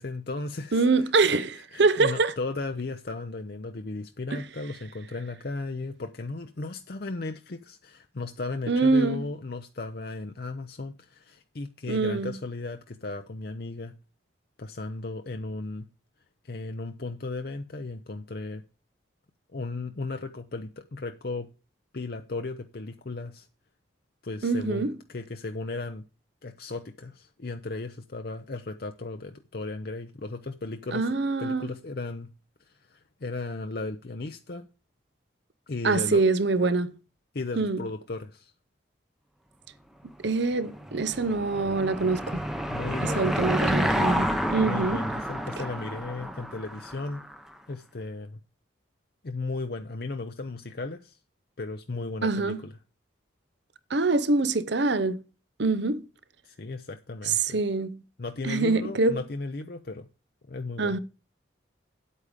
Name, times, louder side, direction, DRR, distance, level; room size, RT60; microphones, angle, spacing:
voice 1, 0.0-1.1 1.5-13.9 14.6-15.9 16.4-18.6 19.5-21.5 21.9-23.5 24.2-26.0 26.4-31.1 31.4-32.3 32.6-34.7 35.7-36.2 37.3-38.5 42.7-43.4 44.7-47.2 47.7-48.4 49.2-51.2 51.6-52.7 56.4-57.6 58.2-60.1 60.5-61.0, left 3 dB, 50° left, 0.6 m, -35 dB
voice 2, 0.7-2.3 4.3-4.4 8.7-9.3 11.9-12.3 24.4-24.9 30.9-31.7 35.8-36.9 37.6-37.8 40.2-42.4 43.0-45.0 52.2-52.6 53.9-55.2 55.6-56.1 57.3-58.0 58.4-59.2 60.8-61.0, right 3 dB, 65° right, 0.8 m, -25 dB
Car passing by / Engine, 40.5-47.4, equal, ahead, 0.8 m, -29 dB
8.9 x 8.4 x 5.1 m
head